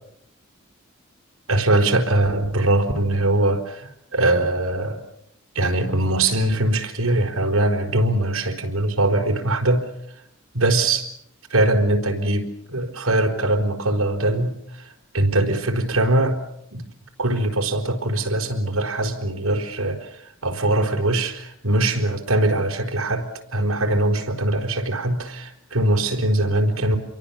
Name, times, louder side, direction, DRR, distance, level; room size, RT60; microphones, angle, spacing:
voice 1, 1.5-5.0 5.5-9.9 10.5-11.1 11.5-14.9 15.1-16.4 16.7-16.9 17.2-27.0, right 2 dB, 90° right, 3 dB, 4.5 m, -22 dB
29.0 x 23.5 x 7.2 m, 0.74 s
head